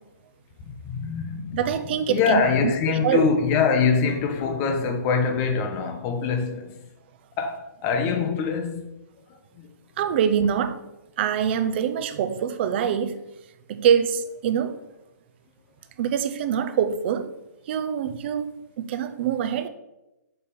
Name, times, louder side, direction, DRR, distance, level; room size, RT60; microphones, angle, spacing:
voice 1, 0.6-1.8 2.1-6.8 7.4-8.8 9.3-9.7, left 5 dB, 25° left, 0.7 m, -24 dB
voice 2, 1.5-2.4 3.0-3.3 10.0-10.8 11.2-13.2 13.7-14.8 16.0-17.3 17.7-19.7, right 8 dB, 35° right, 0.6 m, -24 dB
6.5 x 5.5 x 4.3 m
hypercardioid pair, 155°, 10 cm